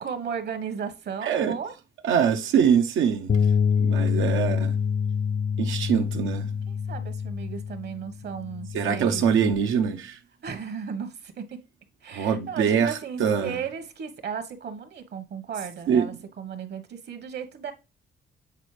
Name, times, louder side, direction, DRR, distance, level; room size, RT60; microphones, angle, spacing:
voice 1, 0.0-1.7 4.2-4.5 6.7-9.3 10.4-11.6 12.0-17.7, right 7 dB, 55° right, 1.2 m, -35 dB
voice 2, 1.2-1.6 2.0-3.3 3.8-4.8 5.6-6.5 8.7-10.2 12.1-12.9 13.2-13.6 15.9-16.1, right 7 dB, 80° right, 0.7 m, -23 dB
Bass guitar, 3.3-9.5, left 6 dB, 40° left, 0.4 m, -26 dB
8.1 x 4.2 x 3.2 m
cardioid pair, 90°, 20 cm